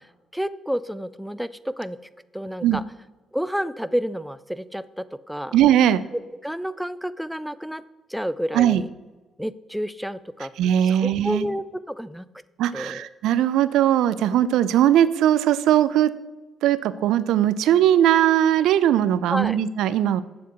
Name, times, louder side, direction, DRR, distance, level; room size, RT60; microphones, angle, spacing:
voice 1, 0.3-2.0 2.3-2.8 3.3-5.6 6.1-7.8 8.1-8.9 9.4-10.5 10.8-12.3 12.7-13.1 19.2-19.6, equal, ahead, 15 dB, 0.4 m, -30 dB
voice 2, 5.5-6.0 8.5-8.8 10.6-11.5 12.6-16.1 16.6-20.2, right 11 dB, 85° right, 16 dB, 0.4 m, -19 dB
7.9 x 7.2 x 4.6 m, 1.2 s
cardioid pair, 90°, 0 cm